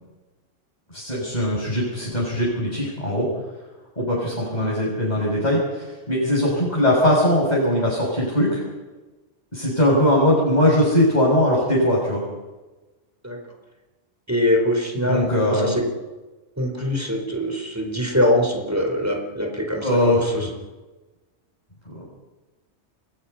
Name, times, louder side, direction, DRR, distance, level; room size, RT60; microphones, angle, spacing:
voice 1, 0.9-3.3 4.0-8.6 9.5-12.2 15.0-15.7 19.8-20.5 21.9-22.1, left 1 dB, 35° left, -5 dB, 7.8 m, -20 dB
voice 2, 14.3-15.8 16.6-20.5, left 1 dB, 15° right, 2 dB, 4.0 m, -23 dB
29.0 x 23.0 x 5.8 m, 1.2 s
omnidirectional pair, 1.2 m